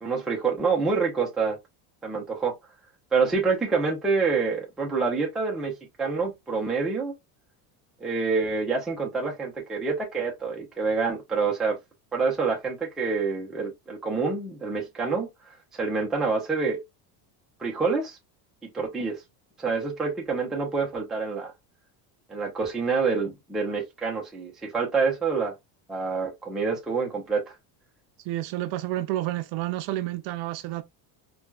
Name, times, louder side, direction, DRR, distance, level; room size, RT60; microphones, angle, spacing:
voice 1, 0.0-1.6 2.0-2.5 3.1-5.7 6.0-7.1 8.0-11.8 12.1-16.8 17.6-18.2 18.7-19.2 19.6-21.5 22.3-25.5 25.9-27.5, right 4 dB, ahead, 0.4 m, -27 dB
voice 2, 28.2-30.8, right 15 dB, 75° right, 0.6 m, -30 dB
4.3 x 2.2 x 2.2 m
cardioid pair, 175°, 44 cm